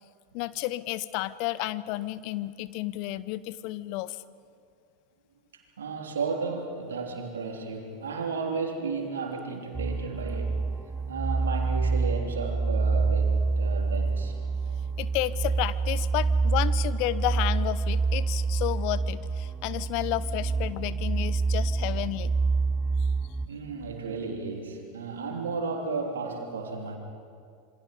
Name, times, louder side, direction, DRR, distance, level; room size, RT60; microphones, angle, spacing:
voice 1, 0.3-4.2 15.0-22.3 23.0-23.1, left 16 dB, 50° left, 17 dB, 0.7 m, -31 dB
voice 2, 5.5-10.7 11.1-14.4 23.4-27.0, right 4 dB, 75° right, 2 dB, 3.2 m, -33 dB
sound 1, 9.7-23.5, right 4 dB, 15° right, 0.8 m, -27 dB
27.5 x 24.5 x 5.4 m, 2.3 s
figure-of-eight pair, 85°, 0 cm